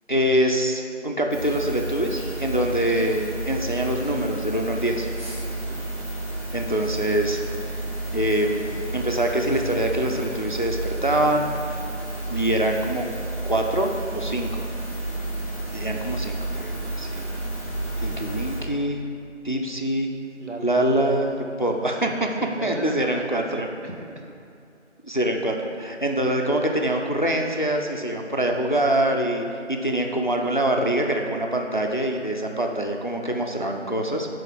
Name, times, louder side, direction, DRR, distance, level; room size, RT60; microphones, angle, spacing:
voice 1, 0.1-5.1 6.5-7.4 8.1-11.8 12.3-13.1 13.4-14.7 15.7-17.3 18.0-19.0 19.4-20.1 20.6-21.3 21.6-22.3 22.6-23.7 25.0-34.3, right 1 dB, 40° left, 2 dB, 0.5 m, -24 dB
sound 1, 1.3-18.6, right 2 dB, 20° right, 1.8 m, -31 dB
voice 2, 5.4-5.8 20.4-21.1 22.4-24.3, right 2 dB, 70° right, 2 dB, 1.1 m, -37 dB
9.4 x 3.8 x 5.2 m, 2.6 s
figure-of-eight pair, 175°, 37 cm